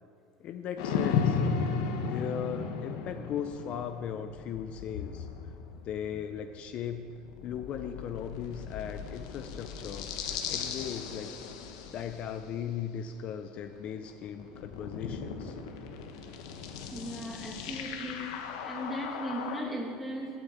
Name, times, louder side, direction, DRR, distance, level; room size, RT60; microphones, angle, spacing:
voice 1, 0.4-1.4 2.0-5.3 5.8-7.1 7.4-10.1 10.5-11.3 11.9-15.6, left 8 dB, 50° left, 7 dB, 0.6 m, -37 dB
sound 1, 0.8-13.0 13.7-19.6, left 6 dB, 80° left, 1.1 m, -36 dB
voice 2, 16.9-18.3 18.6-20.4, equal, 5° right, -1 dB, 2.3 m, -37 dB
9.0 x 8.2 x 7.1 m, 2.3 s
supercardioid pair, 115°, 3 cm